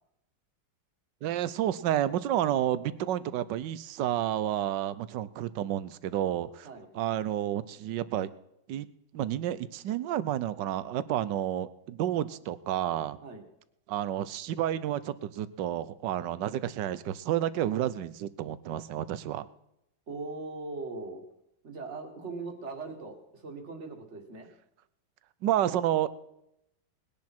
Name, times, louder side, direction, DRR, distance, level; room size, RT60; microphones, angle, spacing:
voice 1, 1.2-6.7 6.9-8.3 8.7-8.9 9.1-13.2 13.9-19.5 25.4-26.1, right 11 dB, 70° right, 16 dB, 1.2 m, -30 dB
voice 2, 20.1-21.2 21.6-24.5, right 3 dB, 35° right, 4 dB, 2.1 m, -40 dB
20.0 x 10.5 x 4.4 m, 0.82 s
omnidirectional pair, 2.2 m